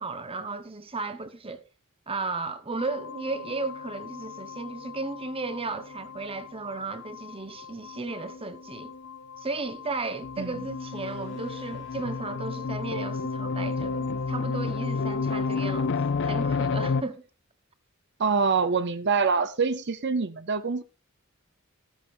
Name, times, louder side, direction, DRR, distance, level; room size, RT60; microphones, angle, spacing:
voice 1, 0.0-1.6 2.1-8.9 9.4-17.2, right 3 dB, 25° right, 1.1 m, -35 dB
sound 1, 2.8-17.0, left 4 dB, 60° left, 0.5 m, -32 dB
voice 2, 18.2-20.8, right 5 dB, 55° right, 0.8 m, -25 dB
14.0 x 13.0 x 2.6 m
head